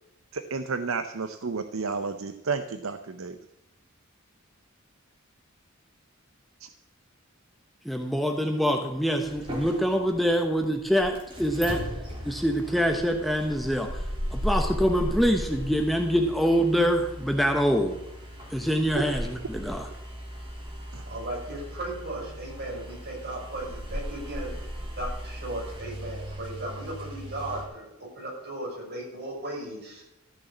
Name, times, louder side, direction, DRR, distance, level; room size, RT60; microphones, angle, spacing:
voice 1, 0.3-3.4 6.6-6.7 20.9-21.0, right 4 dB, 70° right, 9 dB, 0.7 m, -31 dB
voice 2, 7.8-11.8 12.2-18.0 18.5-19.9, equal, ahead, 3 dB, 1.0 m, -25 dB
sound 1, 9.2-27.6, equal, 25° right, 3.4 m, -37 dB
voice 3, 21.0-24.5 25.0-30.0, right 1 dB, 50° right, -3 dB, 6.2 m, -36 dB
14.0 x 6.4 x 8.4 m, 0.88 s
head